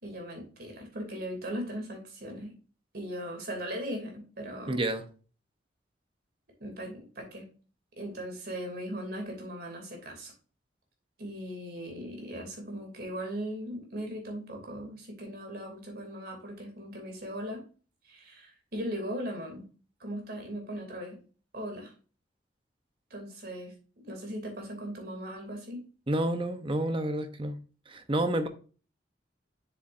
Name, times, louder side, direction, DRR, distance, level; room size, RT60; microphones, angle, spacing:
voice 1, 0.0-2.5 2.9-4.8 6.6-7.5 8.0-10.3 11.2-17.6 18.0-19.7 20.0-21.2 21.5-21.9 23.1-25.8, equal, 60° right, 2.8 m, -38 dB
voice 2, 4.7-5.0 26.1-27.6 27.9-28.5, right 1 dB, 30° right, 0.9 m, -29 dB
7.3 x 7.1 x 2.6 m
head